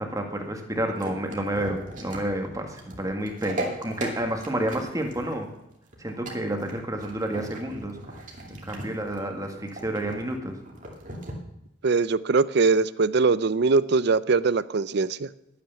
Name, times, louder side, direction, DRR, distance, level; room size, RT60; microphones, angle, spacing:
voice 1, 0.0-2.6 3.0-5.5 6.0-7.9 8.7-10.5, right 1 dB, 20° right, 4 dB, 1.8 m, -30 dB
sound 1, 0.7-11.3, right 1 dB, 40° right, 2.4 m, -38 dB
voice 2, 11.8-15.3, right 4 dB, 60° right, 17 dB, 0.5 m, -22 dB
12.5 x 9.1 x 7.0 m, 0.85 s
head